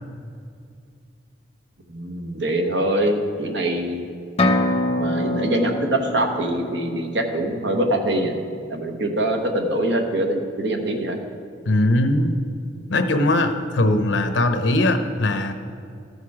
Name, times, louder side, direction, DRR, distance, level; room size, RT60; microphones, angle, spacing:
voice 1, 1.9-4.0 5.0-8.4 8.7-11.2, right 1 dB, 70° right, 3 dB, 1.1 m, -23 dB
sound 1, 4.4-8.1, left 1 dB, 35° left, 0.7 m, -25 dB
voice 2, 11.6-12.4 12.9-15.5, left 1 dB, 80° left, 8 dB, 0.8 m, -20 dB
13.5 x 6.7 x 4.8 m, 2.4 s
head